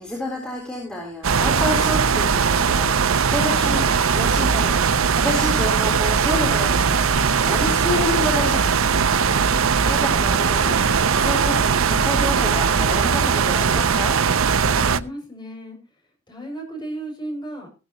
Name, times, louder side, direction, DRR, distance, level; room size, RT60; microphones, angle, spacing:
voice 1, 0.0-8.7 9.8-14.2, left 1 dB, 5° left, -2 dB, 3.6 m, -29 dB
sound 1, 1.2-15.0, right 6 dB, 75° right, 0.7 m, -19 dB
voice 2, 14.6-15.8 16.3-17.7, right 1 dB, 20° left, 1 dB, 6.7 m, -35 dB
15.0 x 13.5 x 3.0 m, 0.30 s
head